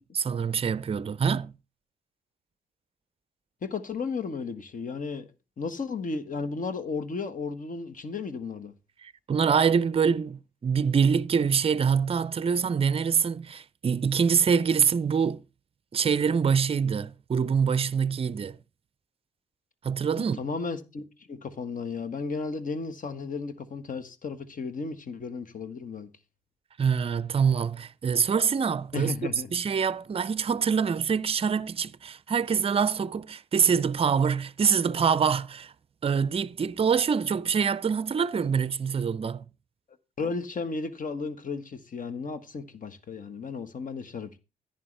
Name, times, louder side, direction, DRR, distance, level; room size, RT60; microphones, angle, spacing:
voice 1, 0.1-1.5 9.0-15.4 15.9-18.6 19.8-20.4 26.8-29.1 29.5-35.7 36.0-39.4, right 6 dB, 35° right, 0.5 m, -25 dB
voice 2, 3.6-5.3 5.6-8.7 20.1-26.1 28.9-29.5 40.2-44.4, left 4 dB, 50° left, 1.4 m, -34 dB
11.0 x 9.3 x 3.3 m
hypercardioid pair, 50°, 18 cm